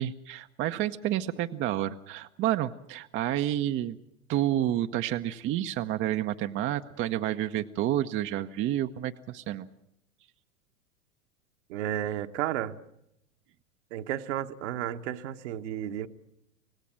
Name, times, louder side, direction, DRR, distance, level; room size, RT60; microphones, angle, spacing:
voice 1, 0.0-4.0 4.3-9.7, right 12 dB, 30° right, 8 dB, 0.8 m, -29 dB
voice 2, 11.7-12.7 13.9-16.1, right 11 dB, 55° right, 8 dB, 1.3 m, -32 dB
26.0 x 18.0 x 7.5 m, 0.79 s
figure-of-eight pair, 90°, 41 cm